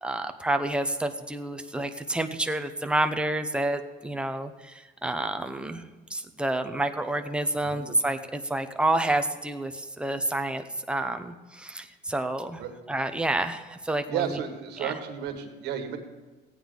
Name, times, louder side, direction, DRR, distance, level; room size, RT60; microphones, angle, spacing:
voice 1, 0.0-4.7 5.0-5.8 6.1-12.6 12.9-14.4 14.8-14.9, right 1 dB, 5° right, 6 dB, 0.8 m, -29 dB
voice 2, 14.1-16.0, right 9 dB, 85° right, 5 dB, 1.7 m, -32 dB
16.0 x 9.1 x 3.9 m, 1.3 s
cardioid pair, 110°, 17 cm